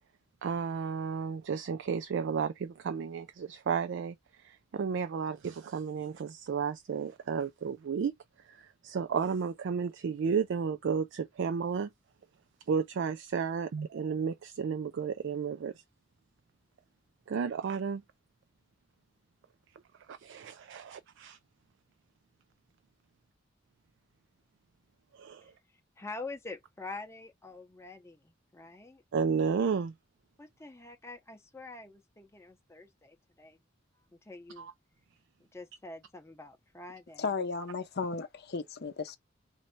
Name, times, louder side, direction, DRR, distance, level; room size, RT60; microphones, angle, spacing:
voice 1, 0.4-8.1 8.5-11.9 12.7-15.7 17.3-18.0 20.1-21.4 25.1-25.5 29.1-29.9 34.6-34.7, right 6 dB, 65° right, 0.4 m, -32 dB
voice 2, 26.0-29.0 30.4-33.6 34.1-34.7 35.4-37.3, left 3 dB, 15° left, 0.7 m, -46 dB
voice 3, 37.2-39.2, left 4 dB, 55° left, 0.6 m, -34 dB
3.2 x 2.6 x 4.4 m
head